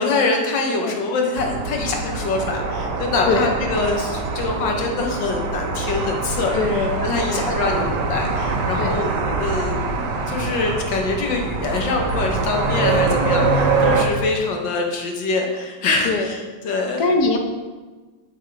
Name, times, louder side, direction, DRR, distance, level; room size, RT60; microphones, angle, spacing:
voice 1, 0.0-9.1 9.4-9.9 10.3-17.1, left 3 dB, 80° left, 1 dB, 1.8 m, -24 dB
sound 1, 1.4-14.0, right 3 dB, 70° right, 1.4 m, -24 dB
voice 2, 6.5-7.4 8.8-8.9 12.6-12.7 13.8-14.0 16.0-16.3 17.0-17.4, left 3 dB, 65° left, 4 dB, 1.3 m, -22 dB
7.8 x 5.5 x 4.7 m, 1.3 s
omnidirectional pair, 2.0 m